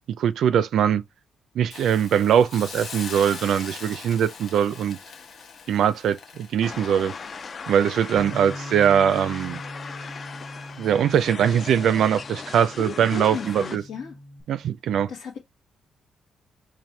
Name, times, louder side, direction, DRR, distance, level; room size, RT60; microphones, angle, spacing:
voice 1, 0.2-1.0 1.6-5.0 5.7-7.1 7.7-9.6 10.8-13.8 14.5-15.1, right 9 dB, 70° right, 0.3 m, -21 dB
Hiss, 1.7-8.7 9.1-9.3, left 5 dB, 60° left, 1.0 m, -41 dB
sound 1, 6.6-13.8, left 5 dB, 45° left, 0.3 m, -38 dB
Bass guitar, 8.2-14.4, equal, 10° left, 0.9 m, -41 dB
voice 2, 12.8-14.2 15.1-15.4, left 5 dB, 80° left, 1.2 m, -35 dB
4.2 x 2.5 x 3.2 m
cardioid pair, 90°, 0 cm